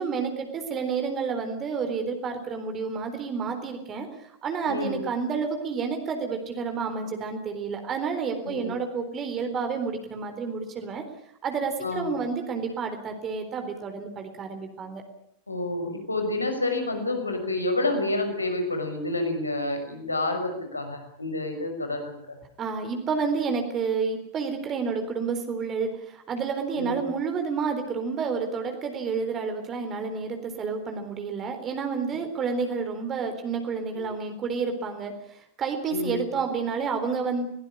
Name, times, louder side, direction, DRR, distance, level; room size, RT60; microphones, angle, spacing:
voice 1, 0.0-4.1 4.4-11.0 11.4-15.0 22.6-37.5, right 5 dB, 30° right, 6 dB, 3.9 m, -30 dB
voice 2, 4.7-5.0 8.4-8.7 11.8-12.1 15.5-22.4 26.8-27.0 33.9-34.0 35.9-36.3, left 2 dB, 80° left, 5 dB, 6.0 m, -29 dB
21.5 x 18.5 x 9.9 m, 0.74 s
figure-of-eight pair, 90°, 0 cm